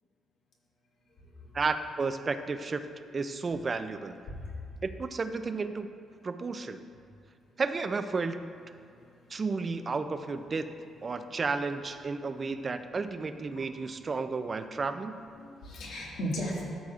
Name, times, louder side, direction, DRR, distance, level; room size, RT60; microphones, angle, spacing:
voice 1, 1.5-2.8 3.1-4.2 4.8-5.9 6.2-6.8 7.6-8.6 9.3-10.7 11.0-15.2, right 4 dB, 25° right, 9 dB, 0.3 m, -32 dB
voice 2, 8.9-9.3 13.5-13.7 15.3-16.6, equal, 75° left, -4 dB, 1.8 m, -37 dB
13.5 x 6.4 x 2.4 m, 2.3 s
cardioid pair, 170°, 0 cm